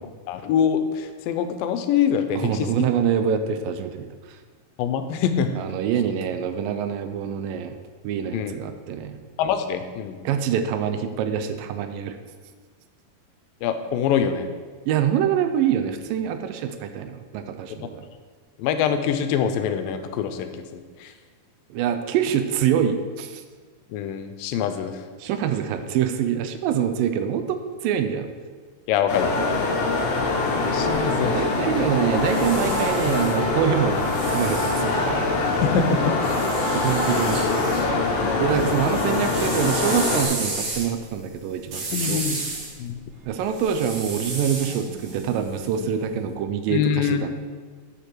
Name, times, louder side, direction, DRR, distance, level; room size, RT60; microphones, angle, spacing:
voice 1, 0.3-2.7 4.8-5.5 8.3-8.6 9.4-10.2 13.6-14.5 18.6-21.1 23.9-25.0 28.9-29.3 30.7-31.4 35.6-36.4 38.2-38.8 41.9-42.4 42.8-43.0 46.7-47.3, left 8 dB, 90° left, 8 dB, 2.4 m, -24 dB
voice 2, 2.4-4.1 5.6-7.8 8.0-9.2 10.2-12.2 14.9-18.1 21.7-23.4 25.2-27.4 27.8-28.3 31.2-35.5 36.7-37.4 38.4-42.2 43.3-47.3, right 8 dB, 85° right, 8 dB, 2.4 m, -25 dB
sound 1, 29.1-40.2, left 3 dB, 65° left, 2.4 m, -24 dB
sound 2, 32.1-35.5 36.2-37.9 38.2-46.1, right 3 dB, 60° right, 3.3 m, -33 dB
7.8 x 6.6 x 6.3 m, 1.5 s
omnidirectional pair, 3.9 m